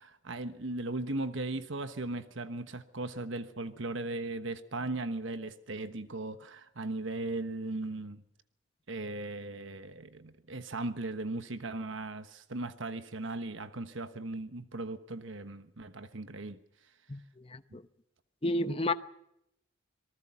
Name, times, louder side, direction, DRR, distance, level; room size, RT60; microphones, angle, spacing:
voice 1, 0.0-8.2 8.9-16.6 17.7-17.8 18.8-18.9, right 2 dB, 70° right, 1.2 m, -37 dB
voice 2, 17.1-17.8 18.4-18.9, left 1 dB, 25° left, 0.9 m, -32 dB
26.5 x 20.0 x 5.8 m
head